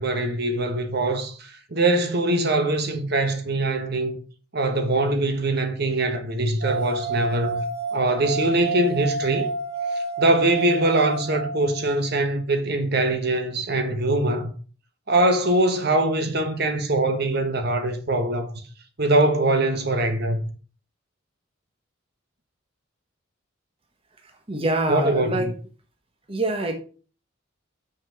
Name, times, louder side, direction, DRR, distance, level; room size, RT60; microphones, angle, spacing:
voice 1, 0.0-1.3 1.7-4.2 4.5-7.6 7.9-9.5 10.2-14.5 15.1-18.5 19.0-20.4 24.9-25.4, right 2 dB, 50° right, 1.3 m, -22 dB
sound 1, 6.6-12.1, right 2 dB, 75° left, 1.5 m, -29 dB
voice 2, 24.5-25.5 26.3-26.8, right 2 dB, 25° right, 1.2 m, -25 dB
6.3 x 5.7 x 6.3 m
head